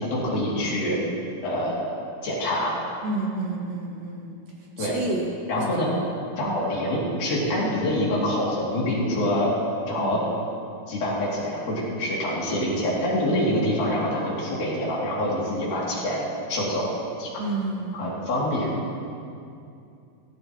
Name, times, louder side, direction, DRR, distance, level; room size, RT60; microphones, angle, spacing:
voice 1, 0.1-1.0 1.4-1.8 2.2-2.7 4.8-4.9 5.5-5.9 6.4-9.5 9.9-10.2 10.9-16.2 16.5-16.9 17.2-17.4 17.9-18.7, left 1 dB, 65° left, -6 dB, 4.3 m, -25 dB
voice 2, 3.0-4.3 4.8-5.3 6.4-6.5 10.0-10.1 17.4-18.1, right 2 dB, 65° right, -4 dB, 3.4 m, -29 dB
17.5 x 14.5 x 3.0 m, 2.5 s
omnidirectional pair, 4.5 m